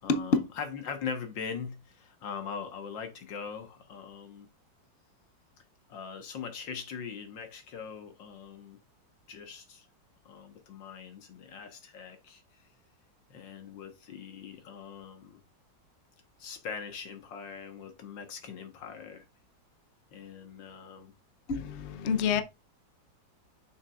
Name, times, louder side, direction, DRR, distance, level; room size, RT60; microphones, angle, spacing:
voice 1, 0.0-4.5 5.9-8.8 9.3-9.9 10.3-12.4 13.3-15.4 16.4-19.2 20.1-21.1, left 6 dB, 80° left, 2.0 m, -41 dB
voice 2, 21.5-22.4, left 6 dB, 55° left, 0.8 m, -28 dB
7.4 x 6.1 x 2.4 m
omnidirectional pair, 2.0 m